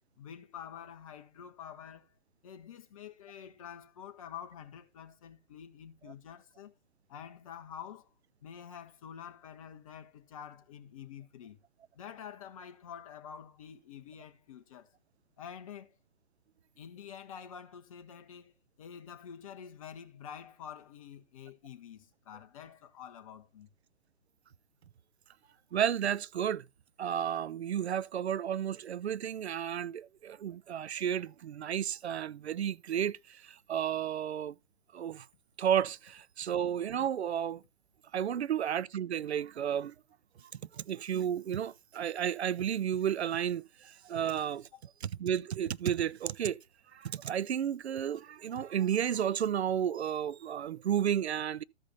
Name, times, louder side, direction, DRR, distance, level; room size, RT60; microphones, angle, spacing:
voice 1, 0.2-2.1 2.4-6.7 7.1-8.1 8.4-11.6 11.9-14.9 15.4-15.9 16.8-23.7 44.7-44.8, left 8 dB, 30° left, 0.9 m, -48 dB
voice 2, 25.7-26.7 27.0-34.6 34.9-35.3 35.6-37.6 38.1-39.9 40.7-44.7 45.0-46.6 46.9-51.6, right 9 dB, 65° right, 0.5 m, -32 dB
13.0 x 5.1 x 4.0 m
figure-of-eight pair, 135°, 36 cm